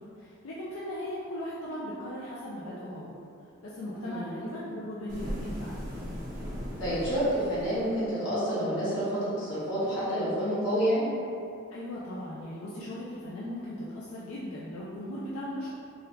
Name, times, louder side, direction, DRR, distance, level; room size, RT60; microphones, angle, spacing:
voice 1, 0.2-3.1 3.6-5.8 11.7-15.8, left 1 dB, 90° left, -7 dB, 0.4 m, -38 dB
voice 2, 4.0-4.3 6.8-11.0, equal, 60° left, -11 dB, 1.3 m, -28 dB
sound 1, 5.1-8.1, equal, 40° right, 0.6 m, -38 dB
3.4 x 2.3 x 2.8 m, 2.5 s
head